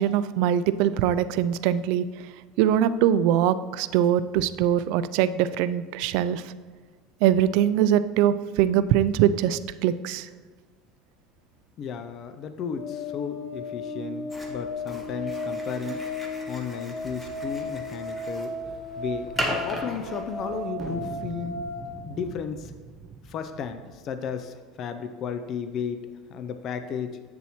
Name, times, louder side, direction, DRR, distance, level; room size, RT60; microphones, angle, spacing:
voice 1, 0.0-2.1 2.6-6.5 7.2-10.3, right 10 dB, 65° right, 14 dB, 0.3 m, -22 dB
voice 2, 11.8-16.0 16.5-18.5 19.0-21.5 22.0-22.7 23.2-27.2, left 7 dB, 40° left, 9 dB, 0.4 m, -34 dB
sound 1, 12.8-21.8, left 2 dB, 85° left, 2.3 m, -35 dB
sound 2, 14.3-20.7, equal, 5° left, 1.0 m, -37 dB
sound 3, 20.7-24.4, right 4 dB, 25° right, 0.6 m, -41 dB
8.5 x 7.1 x 3.0 m, 1.6 s
supercardioid pair, 140°, 0 cm